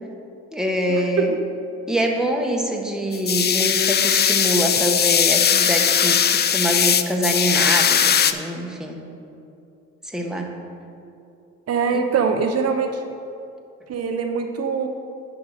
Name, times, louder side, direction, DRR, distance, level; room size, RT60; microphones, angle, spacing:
voice 1, 0.5-1.3 1.9-9.0 10.0-10.5 11.9-12.0, equal, ahead, 1 dB, 1.0 m, -24 dB
sound 1, 3.1-8.3, left 8 dB, 35° left, 0.4 m, -19 dB
voice 2, 11.7-13.0 13.9-14.9, right 5 dB, 55° right, 4 dB, 0.7 m, -23 dB
10.5 x 3.9 x 6.3 m, 2.6 s
cardioid pair, 90°, 30 cm